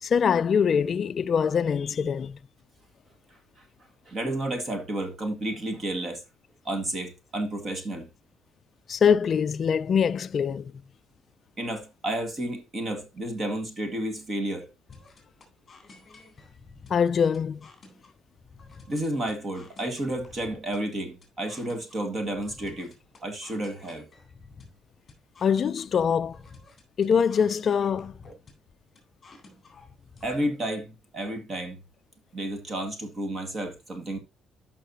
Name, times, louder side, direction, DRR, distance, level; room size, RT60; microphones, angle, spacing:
voice 1, 0.0-2.4 8.9-10.7 16.9-17.6 25.4-26.4 27.0-28.1, left 7 dB, 40° left, 0.3 m, -23 dB
voice 2, 4.1-6.2 6.7-8.1 11.6-14.7 18.9-22.9 23.2-24.1 30.2-31.8 32.3-34.2, right 1 dB, 30° right, 1.9 m, -31 dB
sound 1, 14.9-30.4, left 3 dB, 20° left, 3.7 m, -51 dB
12.5 x 5.7 x 2.8 m
cardioid pair, 150°, 0 cm